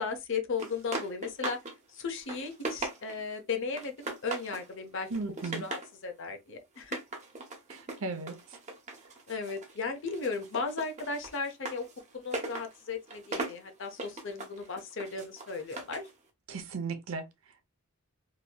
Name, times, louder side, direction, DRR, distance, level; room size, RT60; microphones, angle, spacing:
voice 1, 0.0-1.6 1.9-5.1 5.6-5.8 6.0-7.0 9.3-11.9 12.1-16.0, left 4 dB, 60° left, 0.7 m, -35 dB
sound 1, 0.6-1.7 2.1-3.3 3.8-4.7 5.1-5.9 6.8-9.8 10.1-16.1, right 2 dB, 35° right, 0.8 m, -39 dB
voice 2, 5.1-5.7 7.7-8.6 9.0-9.1 16.5-17.6, right 4 dB, 70° right, 0.6 m, -37 dB
3.0 x 2.7 x 2.2 m
head